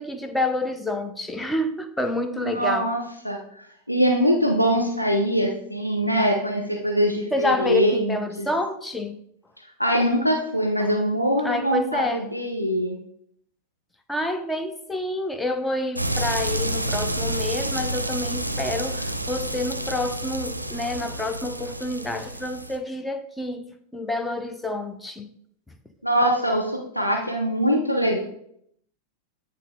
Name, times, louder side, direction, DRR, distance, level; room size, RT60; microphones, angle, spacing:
voice 1, 0.0-2.9 7.3-9.2 10.8-10.9 11.4-12.3 14.1-23.6 23.9-25.3, left 2 dB, 5° left, 0.6 m, -28 dB
voice 2, 2.3-3.4 3.9-8.5 9.8-13.0 26.0-28.2, equal, 90° left, 0.6 m, -23 dB
sound 1, 16.0-22.8, right 1 dB, 85° right, 0.5 m, -29 dB
9.1 x 3.3 x 3.6 m
figure-of-eight pair, 90°, 0 cm